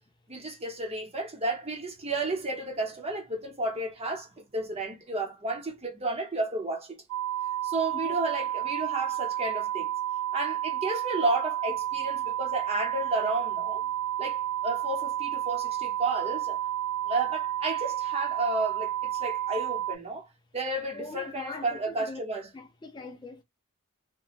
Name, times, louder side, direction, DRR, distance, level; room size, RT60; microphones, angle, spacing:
voice 1, 0.3-7.0 7.6-9.9 10.3-13.8 14.2-16.6 17.1-20.3 20.5-22.5, right 2 dB, 25° right, 0.8 m, -32 dB
sound 1, 7.1-20.0, right 12 dB, 60° right, 0.3 m, -31 dB
voice 2, 20.9-22.2 22.5-23.4, left 3 dB, 20° left, 0.3 m, -42 dB
3.0 x 2.2 x 2.4 m
head